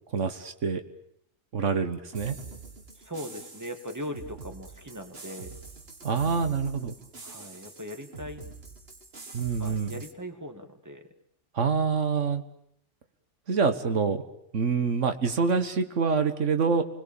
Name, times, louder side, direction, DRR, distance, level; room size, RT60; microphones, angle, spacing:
voice 1, 0.1-0.8 1.5-2.4 6.0-6.9 9.3-9.9 11.5-12.4 13.5-14.2 14.5-16.8, right 5 dB, 90° right, 8 dB, 1.7 m, -26 dB
sound 1, 2.1-10.1, right 4 dB, 55° right, 2.1 m, -45 dB
voice 2, 2.9-5.5 7.2-8.5 9.6-11.1, equal, 15° right, 6 dB, 2.1 m, -39 dB
29.5 x 21.0 x 7.1 m, 0.72 s
omnidirectional pair, 1.2 m